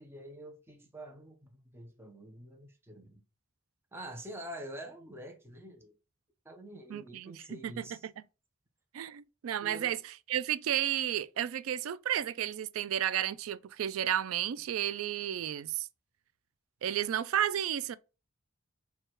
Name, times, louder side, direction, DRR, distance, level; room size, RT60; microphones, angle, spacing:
voice 1, 0.0-3.2 3.9-5.9 6.4-8.1 9.6-9.9, right 1 dB, 10° right, 0.7 m, -46 dB
voice 2, 6.9-8.1 8.9-15.9 16.8-18.0, right 10 dB, 80° right, 0.3 m, -32 dB
4.6 x 2.3 x 4.4 m
head